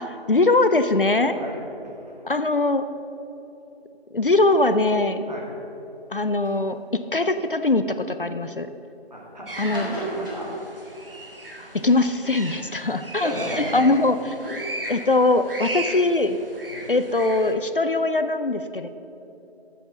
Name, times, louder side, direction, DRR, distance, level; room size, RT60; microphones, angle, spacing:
voice 1, 0.0-1.4 2.2-2.9 4.1-5.2 6.1-6.8 7.1-8.7 9.6-9.9 11.7-13.3 13.7-14.4 14.9-16.4 16.9-18.9, left 2 dB, 55° left, 10 dB, 0.6 m, -21 dB
sound 1, 6.4-6.6 7.3-8.0 9.6-11.5 13.1-13.7 14.4-14.5 15.0-15.1 15.5-15.6 15.8-15.9, equal, 20° left, 2.6 m, -40 dB
voice 2, 9.1-10.5 13.1-13.9 14.4-14.5 16.7-16.9, right 1 dB, 40° right, -3 dB, 2.5 m, -33 dB
sound 2, 9.5-17.5, right 1 dB, 60° right, 1.6 m, -36 dB
10.5 x 7.6 x 6.7 m, 2.9 s
figure-of-eight pair, 180°, 32 cm